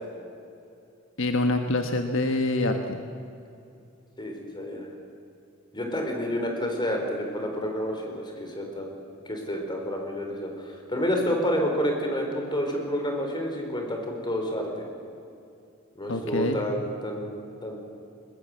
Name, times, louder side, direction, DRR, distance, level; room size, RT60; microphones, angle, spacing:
voice 1, 1.2-3.0 16.1-16.6, left 2 dB, 70° left, 5 dB, 1.4 m, -25 dB
voice 2, 4.2-4.9 5.7-8.9 9.3-14.8 15.9-17.8, equal, 20° left, 2 dB, 4.3 m, -29 dB
21.5 x 21.0 x 7.9 m, 2.6 s
head